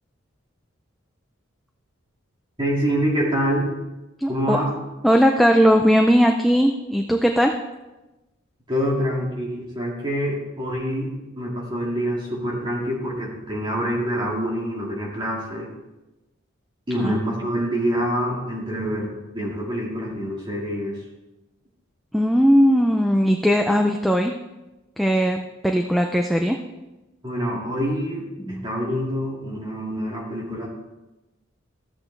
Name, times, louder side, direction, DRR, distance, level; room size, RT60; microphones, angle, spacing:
voice 1, 2.6-3.7 4.3-4.7 8.7-11.1 11.4-15.7 16.9-21.0 27.2-30.7, equal, 25° right, -3 dB, 2.2 m, -26 dB
voice 2, 4.2-4.6 5.0-7.5 16.9-17.1 22.1-24.3 25.0-26.6 28.5-28.6, equal, ahead, 3 dB, 0.4 m, -18 dB
13.0 x 8.4 x 3.3 m, 1.0 s
head